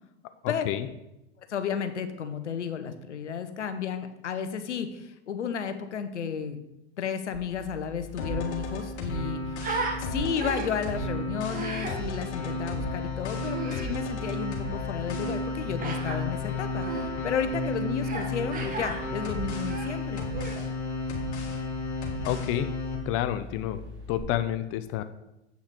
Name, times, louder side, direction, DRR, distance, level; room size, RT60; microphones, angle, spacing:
voice 1, 0.4-0.9 22.2-22.7 23.1-23.8 24.1-25.0, left 12 dB, 40° left, 10 dB, 0.6 m, -29 dB
voice 2, 1.4-6.6 7.0-9.6 10.0-20.2, left 7 dB, 85° left, 9 dB, 0.8 m, -33 dB
sound 1, 7.3-24.2, left 1 dB, 70° right, 1.9 m, -43 dB
Human voice, 8.0-8.1 8.4-10.0 10.4-10.9 11.5-12.0 13.4-13.9 15.8-16.2 16.8-17.0 18.0-18.3 18.5-19.0 19.5-20.6, right 3 dB, 25° right, 1.5 m, -35 dB
sound 2, 8.2-23.0, left 2 dB, 70° left, 2.0 m, -33 dB
7.8 x 5.7 x 4.3 m, 0.91 s
hypercardioid pair, 95°, 34 cm